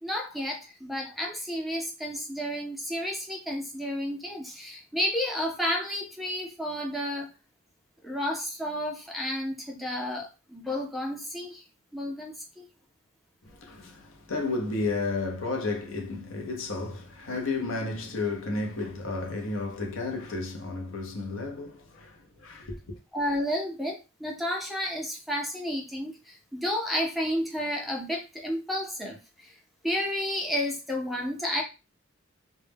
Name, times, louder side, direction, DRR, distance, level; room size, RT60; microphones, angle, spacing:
voice 1, 0.0-7.3 8.0-11.6 11.9-12.7 23.1-29.5 29.8-31.6, left 1 dB, ahead, 0.4 m, -31 dB
voice 2, 13.5-23.0, left 3 dB, 70° left, 0.6 m, -32 dB
2.1 x 2.0 x 3.3 m
head